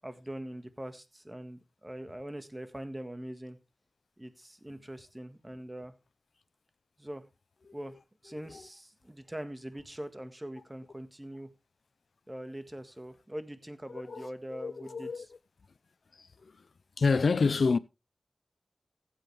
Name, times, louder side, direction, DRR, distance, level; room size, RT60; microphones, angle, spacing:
voice 1, 0.0-3.6 4.2-5.9 7.0-7.2 7.7-8.0 8.2-11.5 12.3-15.3, right 1 dB, 15° right, 1.6 m, -42 dB
voice 2, 13.9-15.3 16.2-16.5 17.0-17.8, left 4 dB, 85° left, 0.5 m, -29 dB
15.5 x 8.0 x 3.4 m
cardioid pair, 50°, 0 cm